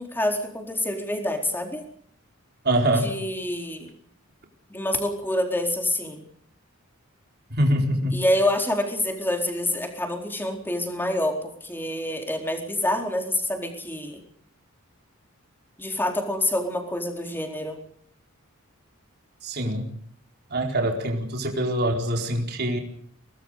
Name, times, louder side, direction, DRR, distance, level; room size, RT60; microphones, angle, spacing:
voice 1, 0.0-1.8 2.9-3.9 4.7-6.2 8.1-14.2 15.8-17.8, left 1 dB, 10° left, 3 dB, 4.2 m, -27 dB
voice 2, 2.6-3.1 7.5-8.2 19.4-19.9 20.5-22.8, right 1 dB, 50° right, 2 dB, 4.4 m, -24 dB
24.5 x 19.0 x 6.7 m, 0.62 s
head